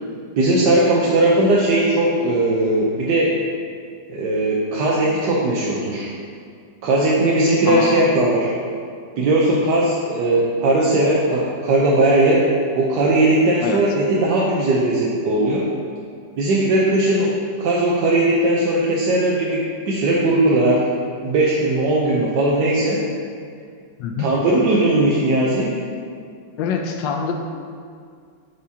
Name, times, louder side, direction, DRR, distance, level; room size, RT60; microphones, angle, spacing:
voice 1, 0.4-3.3 4.1-6.1 6.8-8.5 9.2-12.4 12.7-15.6 16.4-17.3 17.6-20.8 21.2-23.0 24.2-25.7, right 2 dB, 75° right, -4 dB, 1.3 m, -18 dB
voice 2, 7.6-8.1 13.6-13.8 24.0-24.3 26.6-27.3, left 6 dB, 80° left, 3 dB, 1.3 m, -24 dB
10.0 x 4.9 x 2.8 m, 2.2 s
omnidirectional pair, 1.9 m